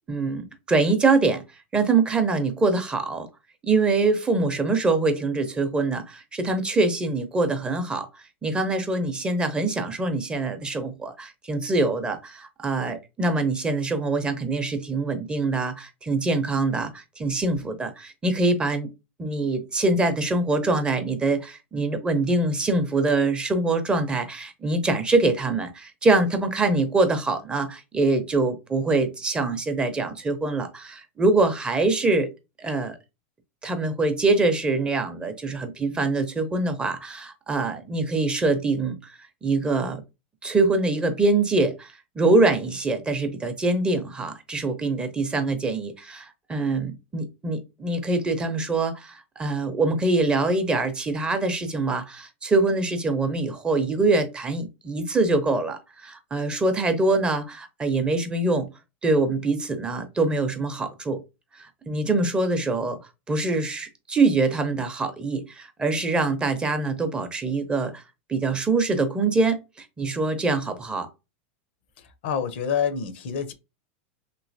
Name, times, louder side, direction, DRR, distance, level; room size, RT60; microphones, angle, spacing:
voice 1, 0.1-1.4 1.7-3.3 3.6-8.1 8.4-18.9 19.2-32.3 32.6-33.0 33.6-39.1 39.4-40.0 40.4-58.7 59.0-61.2 61.6-63.0 63.3-68.0 68.3-71.1, right 3 dB, 15° right, 0.5 m, -24 dB
voice 2, 72.2-73.5, left 7 dB, 70° left, 0.6 m, -27 dB
3.0 x 2.8 x 2.6 m
supercardioid pair, 125°, 6 cm